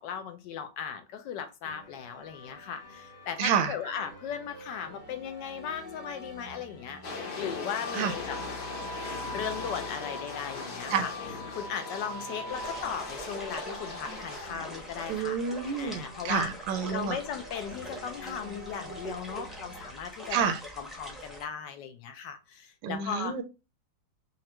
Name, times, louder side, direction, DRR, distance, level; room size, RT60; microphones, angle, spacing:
voice 1, 0.0-8.4 9.3-11.1 11.5-15.4 15.8-16.5 16.9-23.4, left 7 dB, 75° left, 8 dB, 1.2 m, -37 dB
sound 1, 1.6-19.9, equal, 15° left, 0.8 m, -45 dB
voice 2, 3.4-3.7 7.9-8.1 10.9-11.1 15.1-17.2 20.3-20.6 22.8-23.4, right 7 dB, 80° right, 7 dB, 1.3 m, -29 dB
sound 2, 7.0-15.2 15.6-15.8, left 4 dB, 50° left, 0.6 m, -40 dB
sound 3, 12.5-21.5, right 1 dB, ahead, 0.4 m, -44 dB
4.3 x 2.5 x 2.9 m, 0.27 s
omnidirectional pair, 2.0 m